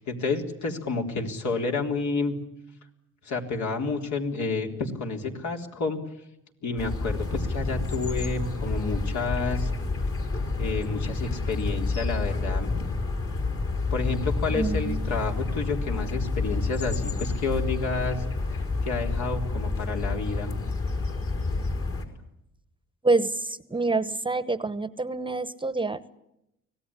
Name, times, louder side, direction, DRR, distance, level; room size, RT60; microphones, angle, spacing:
voice 1, 0.0-2.3 3.2-6.0 6.6-9.7 10.6-12.8 13.9-18.2 18.5-20.5, left 3 dB, 70° left, 2 dB, 3.9 m, -30 dB
sound 1, 6.8-22.0, left 3 dB, 45° left, 4.6 m, -29 dB
voice 2, 14.5-15.2 23.0-26.0, right 3 dB, 15° right, 15 dB, 1.0 m, -27 dB
25.0 x 18.0 x 9.9 m, 0.85 s
cardioid pair, 90°, 30 cm